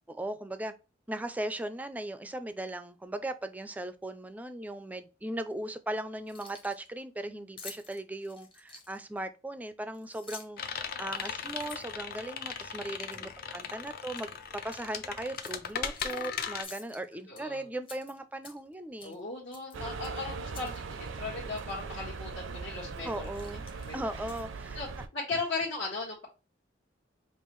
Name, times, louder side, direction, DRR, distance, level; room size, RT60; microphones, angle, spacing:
voice 1, 0.1-0.7 1.1-19.2 23.0-23.6 23.9-24.8, right 1 dB, 10° right, 0.3 m, -38 dB
Keys jangling, 6.2-6.9 7.6-9.2 9.9-10.7 11.1-12.7 13.1-13.3 13.6-14.3 14.6-14.8 15.4-16.3 16.6-17.4 17.8-18.7 19.0-19.2 19.5-20.8 21.1-21.2 21.6-21.7 22.3-22.5 22.9-24.6, left 4 dB, 30° left, 0.9 m, -50 dB
sound 1, 10.6-16.6, left 6 dB, 50° left, 0.5 m, -38 dB
voice 2, 17.3-17.6 19.0-23.2 23.5-24.0 24.7-24.9 25.1-26.3, left 3 dB, 70° left, 1.5 m, -37 dB
sound 2, 19.7-25.1, right 4 dB, 85° right, 0.5 m, -40 dB
5.4 x 2.4 x 3.1 m
head